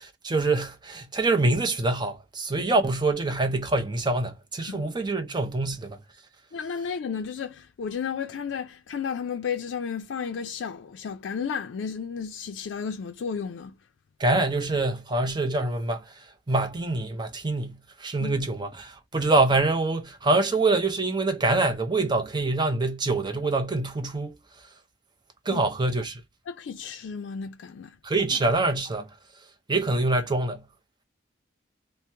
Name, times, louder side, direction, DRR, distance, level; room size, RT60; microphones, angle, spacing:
voice 1, 0.0-6.0 14.2-16.0 16.5-24.3 25.5-26.2 28.0-29.1 29.7-30.6, right 2 dB, 25° right, 0.5 m, -25 dB
voice 2, 6.5-13.7 18.2-18.4 25.5-25.6 26.5-28.0, left 6 dB, 85° left, 0.4 m, -33 dB
2.9 x 2.0 x 3.2 m
head